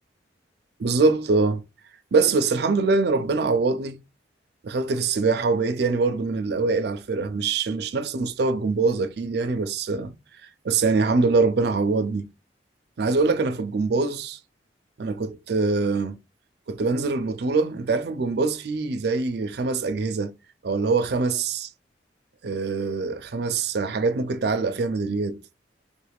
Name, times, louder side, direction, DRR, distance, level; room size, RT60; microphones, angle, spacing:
voice 1, 0.8-1.6 2.1-4.0 4.6-10.1 10.6-12.3 13.0-14.4 15.0-16.2 16.7-20.3 20.6-21.7 22.4-25.4, right 4 dB, 60° right, 0.4 m, -23 dB
3.4 x 2.3 x 3.4 m
head